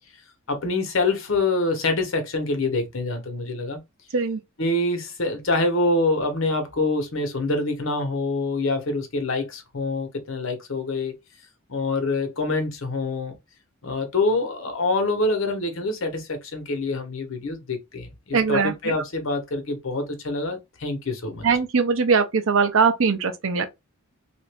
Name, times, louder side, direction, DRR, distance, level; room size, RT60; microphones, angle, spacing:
voice 1, 0.5-3.8 4.6-11.1 11.7-13.3 13.8-21.5, left 2 dB, 65° left, 0.9 m, -25 dB
voice 2, 18.3-18.7 21.4-23.7, right 5 dB, 65° right, 0.6 m, -21 dB
2.8 x 2.5 x 3.3 m
head